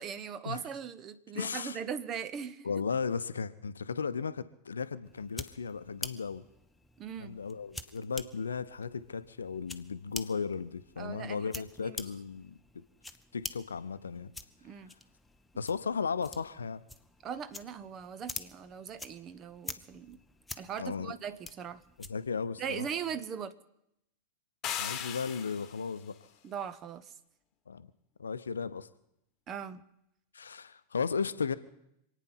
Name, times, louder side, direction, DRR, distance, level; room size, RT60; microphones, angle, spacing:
voice 1, 0.0-2.7 7.0-7.4 11.0-11.5 11.8-12.0 14.6-14.9 17.2-20.2 20.6-21.8 22.6-23.5 26.4-27.1 29.5-29.8, right 7 dB, 30° right, 13 dB, 0.9 m, -39 dB
voice 2, 1.3-1.8 2.6-6.4 7.2-12.8 13.3-14.3 15.6-16.8 20.8-21.1 22.0-22.9 24.8-26.2 27.7-27.9 28.2-28.9 30.3-31.5, left 5 dB, 70° left, 14 dB, 0.7 m, -35 dB
sound 1, 5.0-22.4, left 2 dB, 5° left, 0.8 m, -47 dB
sound 2, 24.6-25.9, left 10 dB, 30° left, 1.4 m, -37 dB
26.5 x 9.2 x 5.7 m, 0.81 s
figure-of-eight pair, 90°, 0 cm